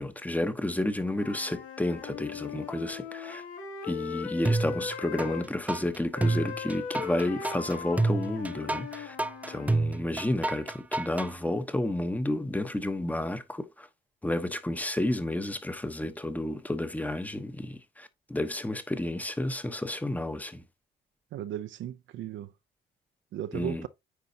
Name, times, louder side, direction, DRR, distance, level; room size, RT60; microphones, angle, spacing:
voice 1, 0.0-3.4 3.8-9.2 9.5-13.9 14.2-20.6 23.5-23.9, left 1 dB, 10° left, 0.9 m, -31 dB
Wind instrument woodwind instrument, 1.0-5.5 6.1-9.8, left 6 dB, 85° left, 1.9 m, -39 dB
sound 1, 4.4-5.3 5.7-11.3, right 2 dB, 10° right, 0.3 m, -28 dB
voice 2, 21.3-22.5 23.3-23.9, right 11 dB, 75° right, 0.5 m, -36 dB
9.4 x 4.0 x 2.7 m
cardioid pair, 90°, 20 cm